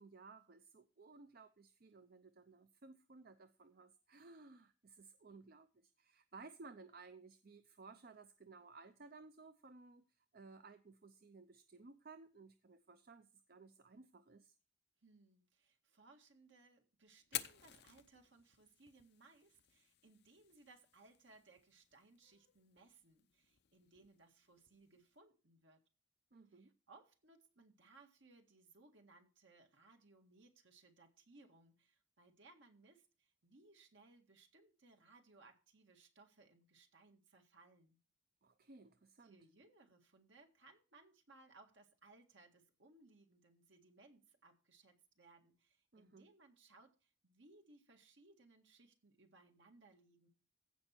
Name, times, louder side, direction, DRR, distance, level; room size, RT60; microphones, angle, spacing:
voice 1, 0.0-14.5 26.3-26.7 38.4-39.4 45.9-46.3, right 3 dB, 50° right, 0.6 m, -58 dB
voice 2, 15.0-25.8 26.5-38.0 39.2-50.3, right 3 dB, 70° right, 1.9 m, -65 dB
Fire, 17.2-25.2, left 12 dB, 55° left, 0.7 m, -52 dB
15.5 x 5.4 x 4.4 m
head